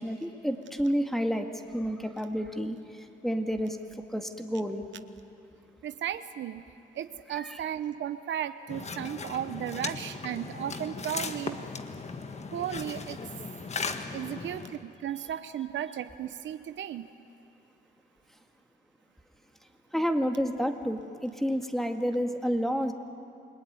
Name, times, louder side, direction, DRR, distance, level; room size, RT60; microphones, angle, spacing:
voice 1, 0.0-3.8 4.1-4.9 7.3-7.6 19.9-22.9, equal, ahead, 5 dB, 2.1 m, -30 dB
voice 2, 5.8-6.6 6.9-11.6 12.5-13.2 14.1-17.1, right 10 dB, 70° right, 11 dB, 0.9 m, -35 dB
sound 1, 8.7-14.8, left 4 dB, 35° left, 1.6 m, -37 dB
29.0 x 20.0 x 9.4 m, 2.8 s
cardioid pair, 90°, 20 cm